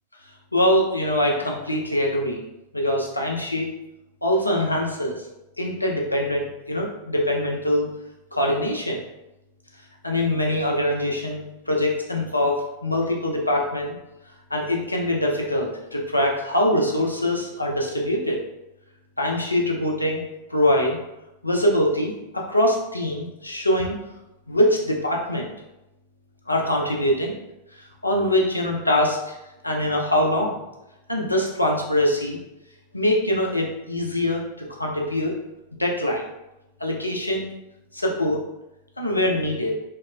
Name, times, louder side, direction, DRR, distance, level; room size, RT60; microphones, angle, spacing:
voice 1, 0.5-2.5 2.7-3.7 4.2-5.3 5.6-7.9 8.3-9.0 10.0-14.0 14.5-18.4 19.2-21.0 21.4-24.0 24.5-25.5 26.5-27.4 27.8-29.4 29.6-30.6 31.1-32.4 32.9-35.3 35.8-36.2 36.8-37.5 37.9-38.5 39.0-39.8, left 1 dB, 85° left, -1 dB, 0.4 m, -23 dB
2.8 x 2.0 x 2.3 m, 0.95 s
figure-of-eight pair, 90°, 0 cm